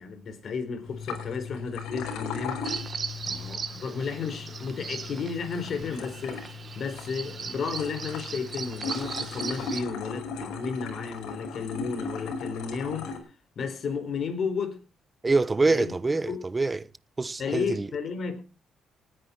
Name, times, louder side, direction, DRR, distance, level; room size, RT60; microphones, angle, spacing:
voice 1, 0.0-2.7 3.2-13.1 13.6-14.8 15.7-15.9 16.3-16.4 17.4-18.4, left 5 dB, 55° left, 4.6 m, -33 dB
sound 1, 0.8-13.2, left 5 dB, 90° left, 4.9 m, -37 dB
Bird vocalization bird call bird song, 2.6-9.8, right 5 dB, 45° right, 2.0 m, -38 dB
voice 2, 15.2-16.9 17.2-17.9, right 3 dB, 25° right, 1.0 m, -25 dB
19.5 x 10.0 x 4.7 m
cardioid pair, 90°, 0 cm